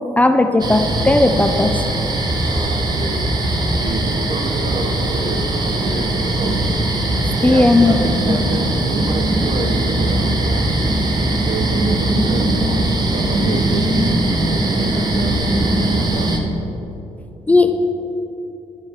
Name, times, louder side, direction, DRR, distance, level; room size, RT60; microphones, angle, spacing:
voice 1, 0.2-1.8 7.4-8.0 8.3-8.4 17.5-17.7, left 2 dB, 10° left, 7 dB, 0.5 m, -15 dB
Night Crickets Back Porch, 0.6-16.4, right 1 dB, 35° right, 1.3 m, -20 dB
voice 2, 2.4-3.3 3.8-6.7 7.4-10.6 11.5-16.4 17.5-17.7, right 2 dB, 55° right, 4 dB, 1.3 m, -29 dB
11.5 x 7.0 x 4.8 m, 2.9 s
cardioid pair, 95°, 12 cm